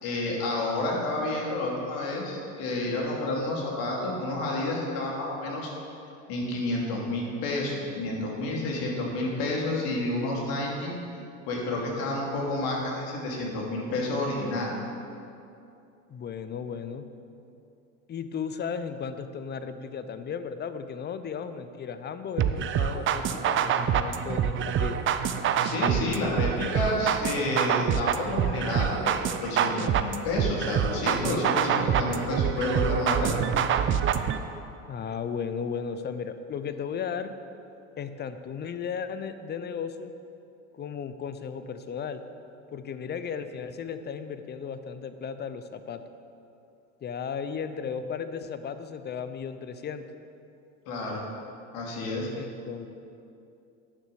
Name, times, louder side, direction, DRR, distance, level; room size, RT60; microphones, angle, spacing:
voice 1, 0.0-5.7 6.3-10.9 11.5-14.7 25.6-33.3 50.9-51.2 51.7-52.3, left 2 dB, 60° left, -2 dB, 2.8 m, -30 dB
voice 2, 16.1-17.1 18.1-25.0 34.9-37.4 38.0-40.1 40.7-42.2 42.7-46.0 47.0-50.0 52.4-52.9, left 6 dB, 25° left, 11 dB, 0.6 m, -35 dB
sound 1, 22.4-34.4, right 8 dB, 30° right, 0.5 m, -26 dB
10.0 x 6.3 x 6.9 m, 2.7 s
hypercardioid pair, 90°, 40 cm